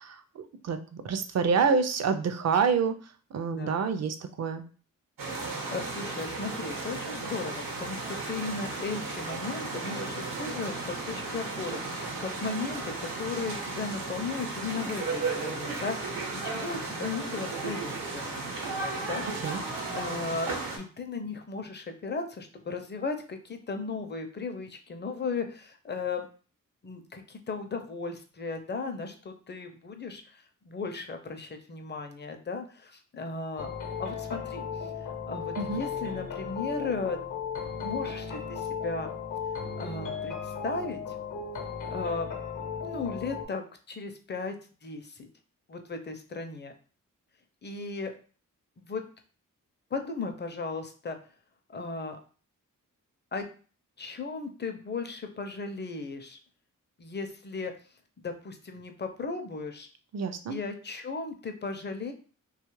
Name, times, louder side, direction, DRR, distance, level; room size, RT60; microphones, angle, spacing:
voice 1, 0.0-3.0 3.3-4.6 19.4-19.6 35.6-35.8 60.1-60.6, right 5 dB, 55° right, 10 dB, 0.4 m, -27 dB
sound 1, 5.2-20.8, right 3 dB, 85° right, 0.8 m, -35 dB
voice 2, 5.7-19.6 19.9-26.3 26.8-33.7 34.0-37.2 37.8-39.1 39.8-41.0 41.9-42.3 42.8-44.5 44.8-45.3 45.7-46.7 47.6-48.1 48.8-49.0 49.9-51.2 51.7-52.2 53.3-53.5 54.0-56.4 57.0-57.7 58.2-59.9 60.5-62.1, left 4 dB, 35° left, 6 dB, 0.5 m, -36 dB
sound 2, 33.6-43.5, left 6 dB, 65° left, 0.8 m, -36 dB
2.8 x 2.4 x 3.0 m, 0.39 s
cardioid pair, 70°, 33 cm